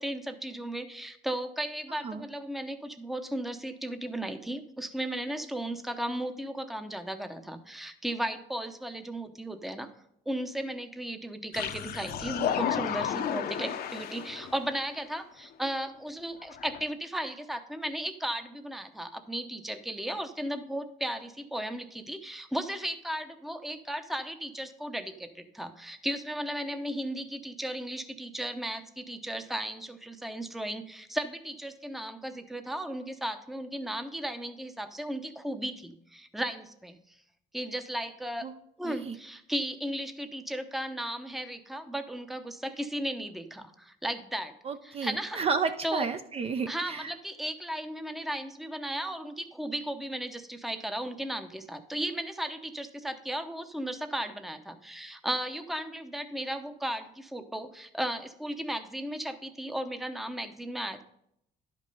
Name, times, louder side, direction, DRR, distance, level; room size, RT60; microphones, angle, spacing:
voice 1, 0.0-9.9 10.3-37.0 37.5-38.5 38.8-44.5 44.8-45.4 45.8-46.1 46.7-61.0, right 1 dB, ahead, 8 dB, 0.8 m, -35 dB
voice 2, 1.9-2.2 38.4-38.5 38.8-39.2 44.6-47.1, right 5 dB, 35° right, 8 dB, 0.6 m, -32 dB
sound 1, 11.5-14.7 15.6-15.7 16.4-16.8, left 9 dB, 65° left, 0.9 m, -33 dB
11.0 x 5.3 x 5.4 m, 0.74 s
cardioid pair, 110°, 17 cm